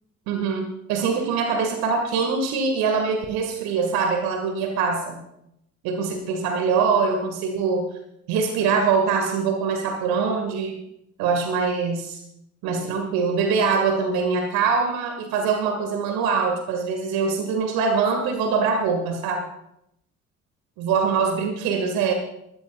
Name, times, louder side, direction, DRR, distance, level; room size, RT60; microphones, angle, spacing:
voice 1, 0.3-5.2 5.8-7.9 8.3-10.8 11.2-12.2 12.6-19.5 20.8-22.1, right 5 dB, 65° right, 5 dB, 2.0 m, -23 dB
22.0 x 14.5 x 2.4 m, 0.79 s
figure-of-eight pair, 45°, 39 cm